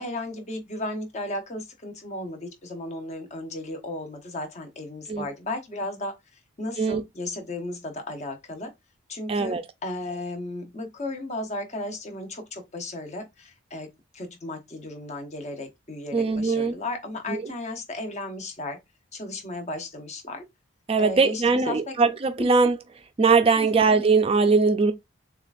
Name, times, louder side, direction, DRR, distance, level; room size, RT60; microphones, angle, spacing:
voice 1, 0.0-6.1 6.6-8.7 9.1-13.9 14.1-18.8 19.1-20.4 21.0-21.9 22.4-22.5 23.6-23.8, left 2 dB, 35° left, 0.9 m, -35 dB
voice 2, 9.3-9.6 16.1-16.8 17.3-17.4 20.9-22.8 23.2-24.9, right 4 dB, 30° right, 0.4 m, -21 dB
6.6 x 2.4 x 2.5 m
head